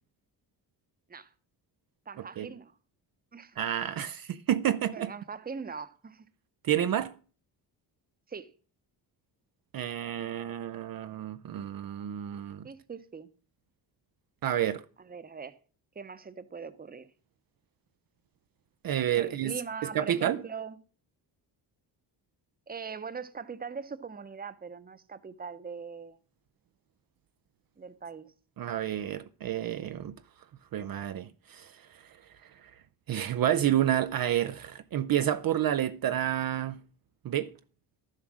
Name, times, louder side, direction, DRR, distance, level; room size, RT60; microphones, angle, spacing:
voice 1, 2.1-2.8 3.3-3.6 4.9-6.3 8.3-8.5 12.6-13.3 15.0-15.6 15.9-17.1 19.1-20.8 22.7-26.2 27.8-28.3, right 5 dB, 20° right, 0.9 m, -41 dB
voice 2, 3.6-5.1 6.6-7.1 9.7-12.7 14.4-14.8 18.8-19.6 19.9-20.4 28.6-30.1 30.7-32.0 32.6-32.7 33.1-36.8 37.2-37.5, right 11 dB, 55° right, 0.6 m, -29 dB
12.0 x 7.5 x 6.2 m
cardioid pair, 110°, 43 cm